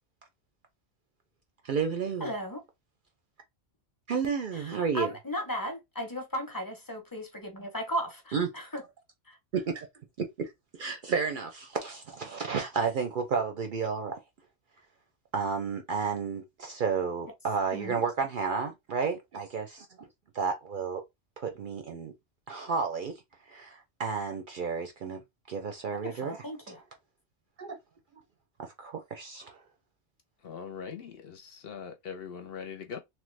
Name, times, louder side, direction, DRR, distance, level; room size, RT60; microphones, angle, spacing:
voice 1, 1.6-2.3 4.1-5.1 8.3-8.5 9.5-9.9 10.2-14.2 15.3-20.1 20.3-21.0 21.4-22.1 22.5-23.2 23.5-25.2 25.5-26.8 27.6-27.8 28.6-29.6, right 5 dB, 60° right, 0.6 m, -32 dB
voice 2, 2.2-2.6 4.5-8.8 9.3-9.4 17.7-18.0 25.9-26.8, equal, 25° left, 0.6 m, -36 dB
voice 3, 30.4-33.0, left 6 dB, 65° left, 0.7 m, -41 dB
3.0 x 2.1 x 3.1 m
omnidirectional pair, 1.2 m